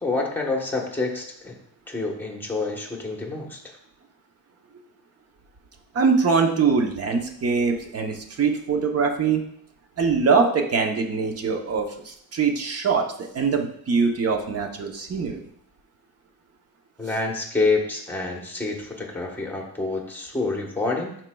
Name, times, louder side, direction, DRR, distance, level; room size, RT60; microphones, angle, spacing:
voice 1, 0.0-1.6 1.9-3.8 17.0-21.2, left 3 dB, 5° left, 0 dB, 1.1 m, -27 dB
voice 2, 5.9-9.4 10.0-15.4, right 5 dB, 40° right, 4 dB, 0.9 m, -23 dB
11.0 x 4.5 x 2.3 m, 0.67 s
cardioid pair, 150°, 39 cm